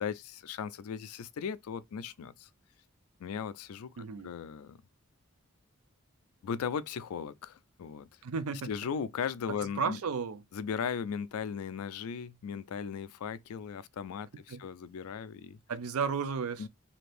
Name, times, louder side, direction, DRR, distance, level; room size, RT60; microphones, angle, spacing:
voice 1, 0.0-2.5 3.2-3.9 4.2-4.8 6.4-8.1 8.6-10.0 10.5-15.6 16.6-16.7, left 7 dB, 85° left, 0.4 m, -37 dB
voice 2, 4.0-4.3 8.2-8.7 9.8-10.4 14.5-14.6 15.7-16.6, right 5 dB, 85° right, 0.5 m, -33 dB
2.8 x 2.5 x 3.2 m
head